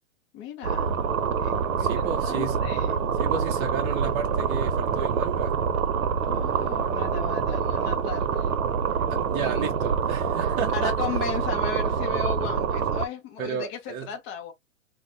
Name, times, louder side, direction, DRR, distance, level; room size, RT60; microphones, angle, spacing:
voice 1, 0.3-0.9 1.4-3.0 6.2-8.5 9.0-9.7 10.7-14.5, left 7 dB, 20° left, 0.5 m, -36 dB
sound 1, 0.6-13.0, right 6 dB, 85° right, 0.7 m, -26 dB
voice 2, 1.8-2.6 3.2-5.5 9.1-10.9 13.4-14.1, right 7 dB, 30° right, 0.8 m, -32 dB
3.3 x 2.1 x 2.6 m
hypercardioid pair, 140°, 41 cm